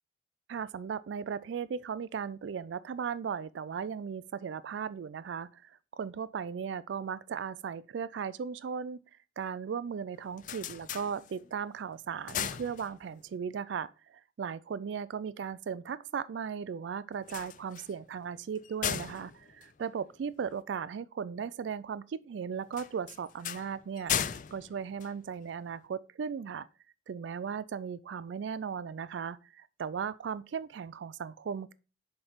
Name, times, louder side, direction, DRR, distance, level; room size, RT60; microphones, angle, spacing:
voice 1, 0.5-9.0 9.4-26.7 27.1-31.7, right 6 dB, 80° right, 0.3 m, -37 dB
sound 1, 10.1-11.7 12.0-13.4 17.1-20.6 22.7-25.8, left 9 dB, 45° left, 0.4 m, -38 dB
7.0 x 3.4 x 5.6 m
head